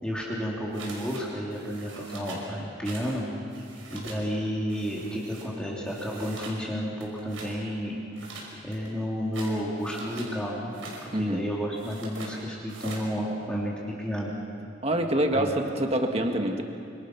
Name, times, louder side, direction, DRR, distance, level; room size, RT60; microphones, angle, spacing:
voice 1, 0.0-3.2 3.9-8.0 8.6-10.7 11.0-14.3 15.3-15.5, equal, 5° left, -5 dB, 3.2 m, -31 dB
sound 1, 0.7-1.2 1.5-2.5 2.8-3.2 3.4-4.2 4.7-5.5 5.9-6.6 7.0-7.6 8.1-10.3 10.7-11.1 11.7-12.3 12.7-13.1, right 3 dB, 85° right, 5.8 m, -43 dB
voice 2, 11.1-11.5 14.8-16.6, right 1 dB, 30° right, 4 dB, 1.7 m, -26 dB
27.5 x 26.0 x 6.0 m, 2.4 s
head